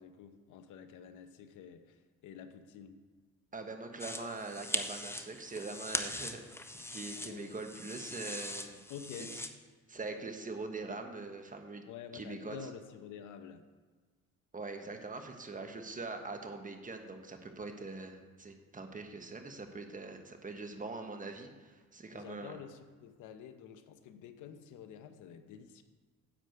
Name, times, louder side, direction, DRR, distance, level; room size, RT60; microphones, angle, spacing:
voice 1, 0.0-3.0 7.2-7.5 8.9-9.3 11.9-13.7 22.1-25.8, left 8 dB, 90° left, 9 dB, 0.9 m, -49 dB
voice 2, 3.5-8.8 9.3-9.4 9.9-11.8 12.1-12.7 14.5-22.6, right 3 dB, 25° right, 5 dB, 1.3 m, -43 dB
sound 1, 4.0-9.5, left 1 dB, 10° left, 0.7 m, -41 dB
10.0 x 4.9 x 7.9 m, 1.4 s
cardioid pair, 90°, 30 cm